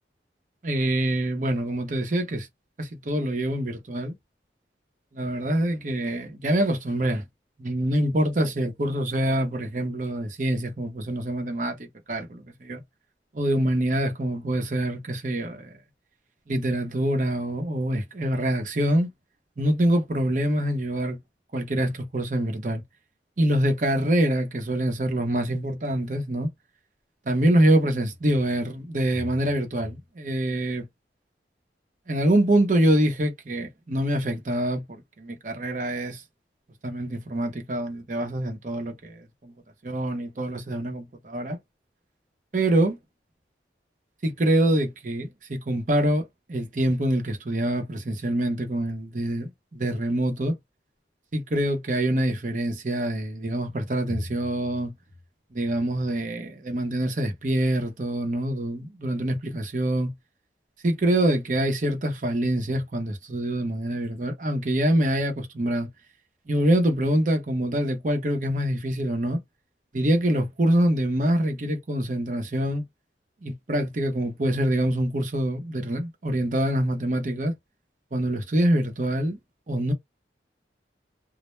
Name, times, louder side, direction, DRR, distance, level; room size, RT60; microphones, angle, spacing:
voice 1, 0.6-2.5 2.8-4.1 5.1-7.2 7.6-12.8 13.3-15.7 16.5-19.1 19.6-21.2 21.5-22.8 23.4-26.5 27.3-30.9 32.1-36.2 36.8-39.5 39.8-41.6 42.5-43.0 44.2-50.6 51.3-54.9 55.5-60.1 60.8-65.9 66.5-69.4 69.9-72.8 73.4-77.5 78.1-79.4 79.7-79.9, right 1 dB, 45° right, 0.7 m, -25 dB
2.1 x 2.1 x 3.0 m
head